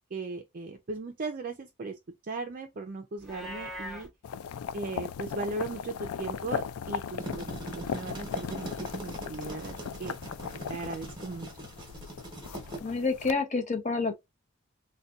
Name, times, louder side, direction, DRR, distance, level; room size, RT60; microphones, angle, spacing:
voice 1, 0.1-2.0 2.2-4.1 4.7-10.2 10.7-11.7, right 3 dB, 40° right, 0.4 m, -38 dB
Livestock farm animals working animals, 3.2-4.1, equal, ahead, 0.8 m, -40 dB
sound 1, 4.2-13.3, left 7 dB, 75° left, 0.3 m, -38 dB
sound 2, 7.2-12.8, right 1 dB, 20° right, 1.0 m, -41 dB
voice 2, 12.8-14.1, left 4 dB, 30° left, 0.7 m, -28 dB
3.9 x 2.2 x 2.3 m
head